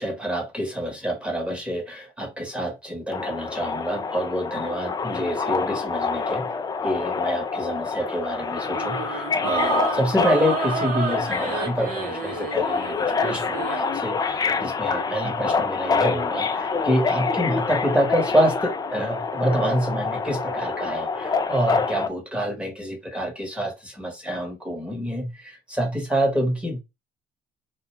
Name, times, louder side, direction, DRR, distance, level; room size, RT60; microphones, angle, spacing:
voice 1, 0.0-6.5 6.8-26.8, equal, 5° right, 1.0 m, -27 dB
Subway metro underground, 3.1-22.1, left 5 dB, 25° left, 0.4 m, -27 dB
sound 1, 8.7-13.9, right 5 dB, 55° right, 0.8 m, -30 dB
2.3 x 2.2 x 3.0 m
cardioid pair, 110°, 17 cm